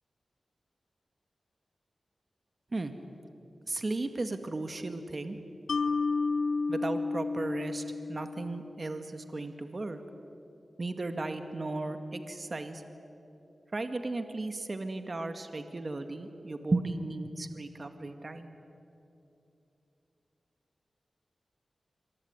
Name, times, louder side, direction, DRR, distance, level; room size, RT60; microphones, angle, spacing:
voice 1, 3.7-5.4 6.7-7.8 8.1-10.0 10.8-12.8 13.7-18.5, right 2 dB, 45° right, 8 dB, 1.9 m, -35 dB
Mallet percussion, 5.7-9.0, left 4 dB, 85° left, 1.1 m, -31 dB
26.0 x 23.0 x 9.6 m, 2.8 s
cardioid pair, 55°, 0 cm